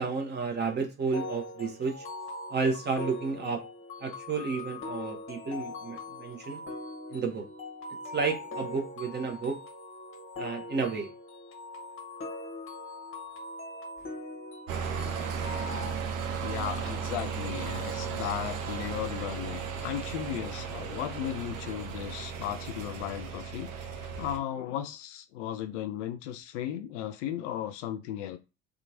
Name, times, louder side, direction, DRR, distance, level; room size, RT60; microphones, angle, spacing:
voice 1, 0.0-2.0 2.5-3.6 4.0-6.6 7.1-7.4 8.1-9.6 10.4-11.1 24.1-24.2, right 4 dB, 25° right, 0.8 m, -31 dB
sound 1, 1.1-15.9, left 2 dB, 30° left, 0.9 m, -41 dB
sound 2, 14.7-24.4, right 6 dB, 65° right, 0.7 m, -35 dB
voice 2, 16.4-28.4, left 11 dB, 60° left, 0.5 m, -36 dB
2.8 x 2.3 x 2.7 m
figure-of-eight pair, 60°, 43 cm